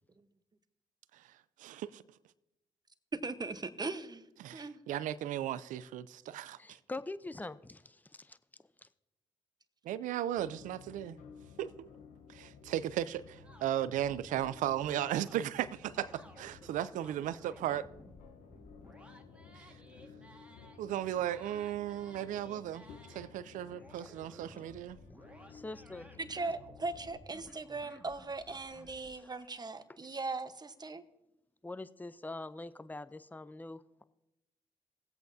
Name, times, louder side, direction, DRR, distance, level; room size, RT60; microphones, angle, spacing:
voice 1, 1.6-2.0 4.4-6.8 9.8-11.2 11.6-11.9 12.3-17.9 20.8-25.0, right 11 dB, 75° right, 0.5 m, -36 dB
voice 2, 3.1-4.3 4.5-4.8 26.2-31.0, right 3 dB, 30° right, 1.1 m, -39 dB
voice 3, 6.6-8.4 8.8-8.9 25.5-26.1 29.1-29.3 30.1-30.2 31.6-34.0, left 2 dB, 10° left, 0.6 m, -44 dB
sound 1, 10.3-27.2, left 5 dB, 75° left, 1.0 m, -55 dB
sound 2, 13.4-20.8 21.1-23.3 23.7-29.1, equal, 10° right, 1.7 m, -57 dB
18.5 x 8.1 x 2.7 m
hypercardioid pair, 45°, 13 cm